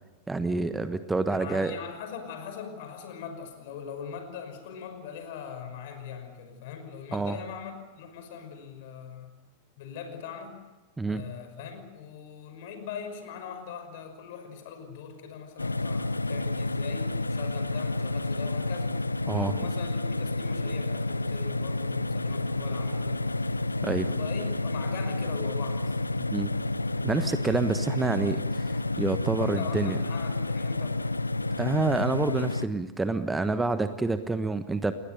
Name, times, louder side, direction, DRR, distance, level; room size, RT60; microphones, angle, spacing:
voice 1, 0.3-1.8 7.1-7.4 11.0-11.2 19.3-19.6 23.8-24.1 26.3-26.5 27.0-30.0 31.6-34.9, right 3 dB, 10° right, 11 dB, 1.2 m, -28 dB
voice 2, 1.3-9.3 9.8-10.6 11.1-19.0 19.4-23.2 24.1-26.0 29.4-31.0, left 7 dB, 50° left, 8 dB, 5.7 m, -41 dB
sound 1, 15.6-32.7, left 2 dB, 80° left, 0.7 m, -30 dB
29.0 x 21.0 x 6.9 m, 1.1 s
figure-of-eight pair, 90°, 0 cm